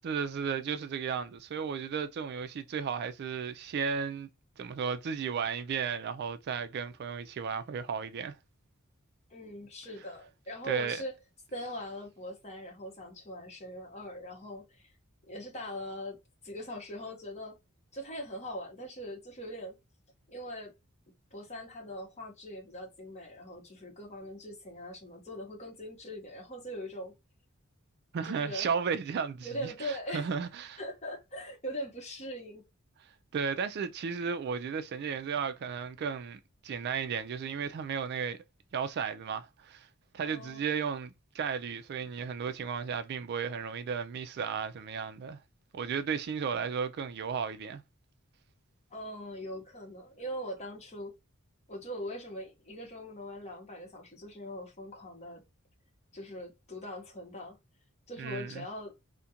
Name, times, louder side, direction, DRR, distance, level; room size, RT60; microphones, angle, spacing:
voice 1, 0.0-4.3 4.6-8.3 10.6-11.0 28.1-30.8 33.3-38.4 38.7-39.9 40.1-45.4 45.7-47.8 58.2-58.6, right 6 dB, 50° right, 0.3 m, -34 dB
voice 2, 9.3-11.1 11.5-14.9 15.3-17.6 17.9-19.7 20.3-20.7 21.3-27.1 28.2-28.7 29.4-30.3 30.8-32.6 40.2-40.7 48.9-51.1 51.7-55.4 56.1-57.6 58.1-59.0, equal, 35° left, 0.9 m, -41 dB
2.4 x 2.1 x 2.7 m
head